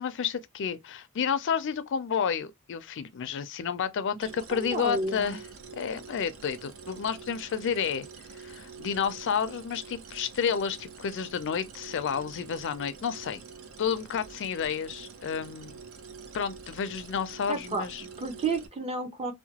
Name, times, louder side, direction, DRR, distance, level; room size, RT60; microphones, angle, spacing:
voice 1, 0.0-5.4 5.7-8.1 8.4-13.4 13.8-15.8 16.3-18.0, left 7 dB, 55° left, 0.4 m, -30 dB
sound 1, 4.2-18.7, right 5 dB, 65° right, 0.6 m, -47 dB
voice 2, 4.5-5.4 17.5-17.9 18.2-19.3, right 3 dB, 30° right, 0.7 m, -31 dB
2.8 x 2.1 x 2.8 m
head